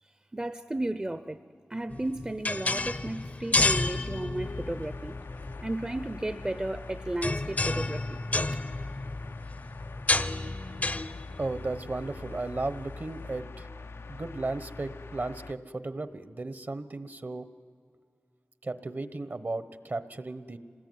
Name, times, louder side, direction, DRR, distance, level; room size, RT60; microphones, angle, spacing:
voice 1, 0.3-1.4 1.7-5.2 5.6-8.2, right 1 dB, 20° right, 10 dB, 0.7 m, -34 dB
sound 1, 1.9-13.3, left 2 dB, 40° left, 0.7 m, -32 dB
sound 2, 4.4-15.5, left 3 dB, 80° left, 0.6 m, -44 dB
voice 2, 11.4-13.7 14.1-17.5 18.6-20.6, right 2 dB, 50° right, 12 dB, 1.1 m, -35 dB
27.0 x 20.0 x 9.4 m, 2.2 s
wide cardioid pair, 80°, 4 cm